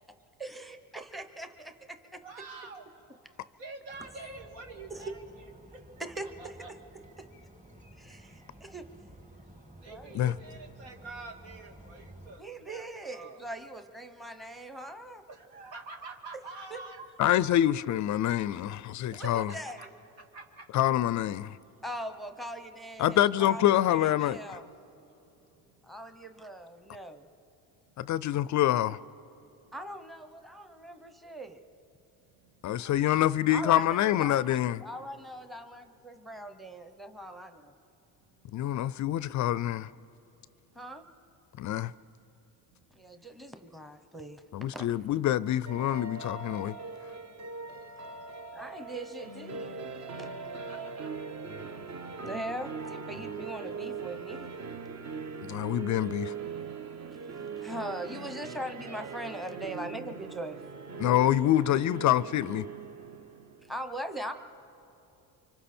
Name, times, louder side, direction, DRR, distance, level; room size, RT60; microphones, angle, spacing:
voice 1, 0.4-2.2 4.9-5.2 6.0-6.6 7.2-7.3 8.0-8.9 9.9-10.2 12.4-15.2 16.7-16.8 19.1-19.9 21.8-24.7 25.8-27.3 29.7-31.6 33.5-37.8 40.7-41.0 42.9-44.9 48.5-49.8 50.1-50.3 52.2-54.5 57.6-60.6 63.6-64.3, right 1 dB, ahead, 0.9 m, -41 dB
voice 2, 2.2-2.8 3.6-5.2 5.7-5.8 6.2-6.7 9.8-13.4 15.3-17.1 19.1-19.9 20.3-20.6 32.7-33.0 50.5-51.1 61.3-61.4, right 3 dB, 80° right, 2.4 m, -46 dB
sound 1, 3.9-12.4, right 1 dB, 15° right, 1.8 m, -53 dB
voice 3, 17.2-19.5 20.7-21.6 23.0-24.4 28.0-29.0 32.6-34.8 38.5-39.9 41.6-41.9 44.5-46.7 55.5-56.3 61.0-62.7, left 12 dB, 45° left, 0.4 m, -26 dB
sound 2, 45.7-63.8, right 5 dB, 40° right, 1.0 m, -41 dB
29.5 x 25.0 x 4.4 m
cardioid pair, 110°, 42 cm